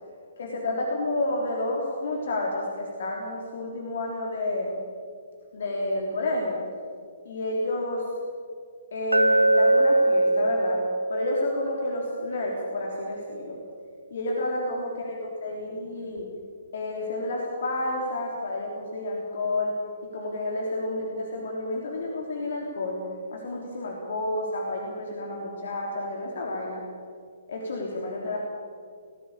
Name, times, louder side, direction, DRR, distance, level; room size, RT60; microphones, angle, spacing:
voice 1, 0.4-4.7 5.5-6.6 7.3-8.0 8.9-10.8 11.1-13.6 14.1-16.3 16.7-19.7 20.0-23.0 23.3-26.8 27.5-28.4, left 2 dB, 55° left, -1 dB, 3.4 m, -30 dB
Glass, 9.1-13.2, right 2 dB, 80° right, 0.5 m, -24 dB
19.5 x 16.5 x 8.6 m, 2.2 s
figure-of-eight pair, 125°, 0 cm